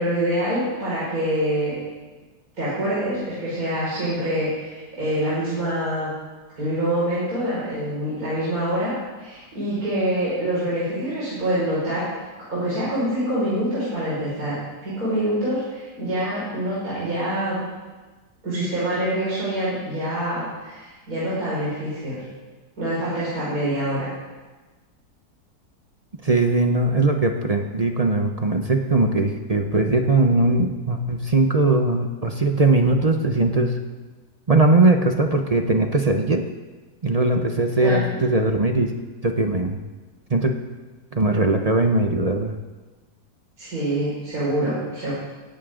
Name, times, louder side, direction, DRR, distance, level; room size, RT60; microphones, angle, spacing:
voice 1, 0.0-1.7 2.6-6.1 6.6-12.1 12.5-17.6 18.4-22.2 22.8-24.0 37.8-38.2 43.6-45.1, right 1 dB, 50° right, -10 dB, 6.0 m, -25 dB
voice 2, 26.2-33.7 34.5-36.5 37.0-39.0 39.2-39.8 40.3-40.6 41.1-42.6, right 2 dB, 35° right, 4 dB, 0.6 m, -20 dB
17.5 x 15.0 x 3.8 m, 1.3 s
omnidirectional pair, 2.0 m